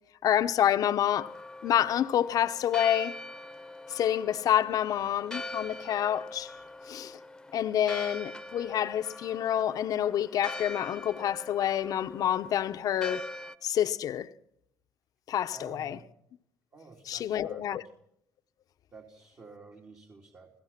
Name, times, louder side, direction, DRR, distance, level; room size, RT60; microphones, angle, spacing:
voice 1, 0.2-1.4 1.6-3.2 3.9-6.5 6.9-7.2 7.5-13.2 13.6-14.3 15.3-16.0 17.1-17.8, left 10 dB, 65° left, 0.9 m, -28 dB
Church bell, 1.2-13.5, left 1 dB, 10° left, 1.2 m, -43 dB
voice 2, 15.5-16.0 16.7-17.8 18.9-20.5, right 3 dB, 45° right, 3.6 m, -51 dB
29.0 x 16.5 x 5.9 m
supercardioid pair, 80°, 7 cm